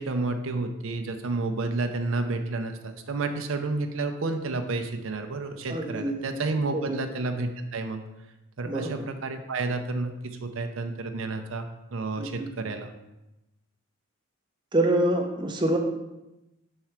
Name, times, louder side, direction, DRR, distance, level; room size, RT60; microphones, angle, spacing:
voice 1, 0.0-8.0 8.6-12.9, right 3 dB, 70° right, 6 dB, 0.6 m, -30 dB
voice 2, 5.7-6.2 6.7-7.0 8.6-9.1 12.2-12.5 14.7-15.8, right 1 dB, 20° right, 2 dB, 0.7 m, -26 dB
4.8 x 4.4 x 5.8 m, 0.97 s
head